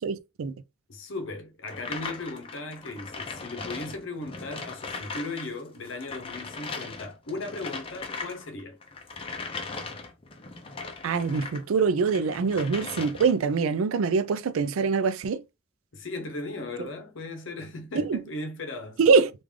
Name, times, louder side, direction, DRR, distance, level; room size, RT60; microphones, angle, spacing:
voice 1, 0.0-0.5 11.0-15.4 17.9-18.2 19.0-19.3, right 5 dB, 90° right, 0.4 m, -24 dB
voice 2, 0.9-8.8 15.9-19.0, left 2 dB, 70° left, 0.7 m, -37 dB
sound 1, 1.7-5.5 5.7-11.6 12.0-13.5, left 4 dB, 25° left, 0.5 m, -38 dB
3.6 x 2.4 x 3.2 m
head